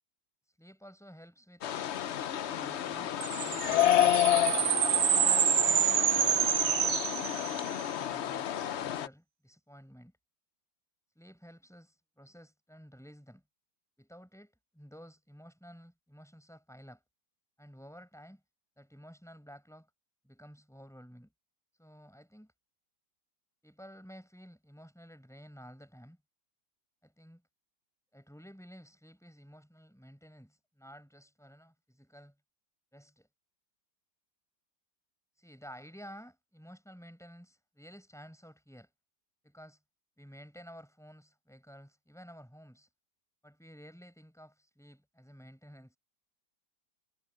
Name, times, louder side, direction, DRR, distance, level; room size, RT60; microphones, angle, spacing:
voice 1, 0.4-1.7 4.9-7.1 7.7-8.4 8.8-10.1 11.2-13.4 14.0-17.0 17.6-18.4 18.8-19.9 20.2-21.3 21.7-22.5 23.6-26.2 27.0-27.4 28.1-32.3 32.9-33.3 35.3-38.9 39.4-39.8 40.2-42.9 43.4-46.0, equal, ahead, 5.4 m, -53 dB
sound 1, 1.6-9.1, left 11 dB, 75° left, 0.6 m, -30 dB
sound 2, 3.2-7.8, right 10 dB, 75° right, 0.6 m, -28 dB
omnidirectional pair, 2.0 m